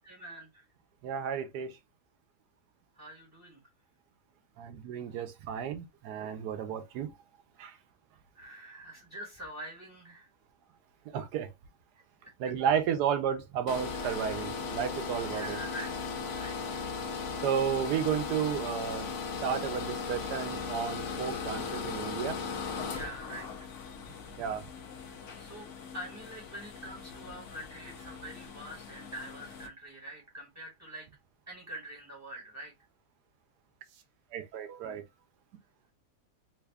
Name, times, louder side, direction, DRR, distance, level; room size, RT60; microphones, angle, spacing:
voice 1, 0.0-0.7 2.9-3.6 7.7-7.8 8.3-10.3 11.9-12.0 13.9-14.4 15.3-16.8 17.3-17.5 22.9-23.8 25.0-25.7 25.9-31.1 31.5-32.7, right 1 dB, 10° right, 1.1 m, -45 dB
voice 2, 1.0-1.7 4.6-7.1 7.6-7.8 11.1-11.5 12.4-15.6 17.4-19.1 19.4-22.4 24.4-24.6 34.3-35.0, right 8 dB, 85° right, 1.2 m, -32 dB
sound 1, 13.7-29.7, left 5 dB, 60° left, 0.9 m, -38 dB
3.3 x 2.3 x 3.3 m
omnidirectional pair, 1.7 m